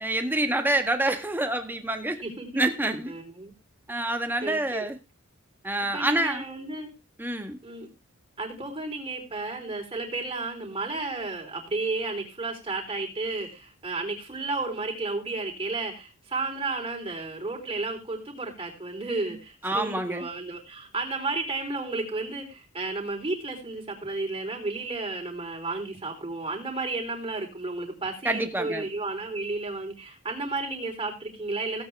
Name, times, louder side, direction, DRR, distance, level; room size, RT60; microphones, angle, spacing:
voice 1, 0.0-2.2 2.5-3.1 3.9-4.9 5.6-6.4 7.2-7.6 19.6-20.2 28.2-28.8, right 1 dB, 10° right, 1.5 m, -27 dB
voice 2, 2.2-2.6 3.1-3.5 3.9-4.9 5.9-6.9 7.6-7.9 8.4-31.8, right 3 dB, 25° right, 4.0 m, -33 dB
16.5 x 8.7 x 3.5 m
head